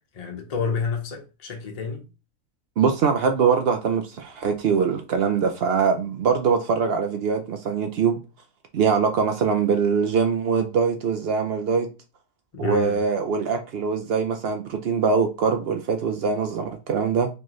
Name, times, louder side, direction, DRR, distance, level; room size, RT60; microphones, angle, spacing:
voice 1, 0.1-2.0 12.5-13.0, left 4 dB, 35° left, 0.7 m, -29 dB
voice 2, 2.8-8.2 8.7-11.9 12.6-17.3, right 6 dB, 85° right, 0.5 m, -23 dB
4.5 x 3.0 x 3.0 m
omnidirectional pair, 1.6 m